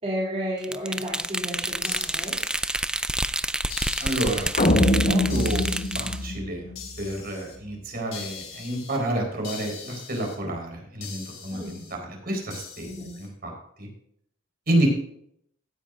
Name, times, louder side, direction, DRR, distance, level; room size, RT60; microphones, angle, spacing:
voice 1, 0.0-2.4 11.5-11.9 12.8-13.2, equal, 30° right, -6 dB, 2.9 m, -32 dB
sound 1, 0.6-6.2, right 1 dB, 5° right, 0.3 m, -28 dB
sound 2, 1.8-3.2 3.7-4.9 5.3-6.3 6.7-7.6 8.1-9.0 9.4-10.4 11.0-11.9 12.5-13.3, left 7 dB, 75° left, 3.3 m, -42 dB
voice 2, 4.0-5.6 6.0-6.6 7.0-12.9 13.2-13.5 13.8-13.9 14.7-14.9, right 1 dB, 50° right, 1 dB, 4.3 m, -29 dB
sound 3, 4.6-7.0, left 1 dB, 45° left, 1.2 m, -23 dB
16.0 x 10.0 x 2.6 m, 0.69 s
head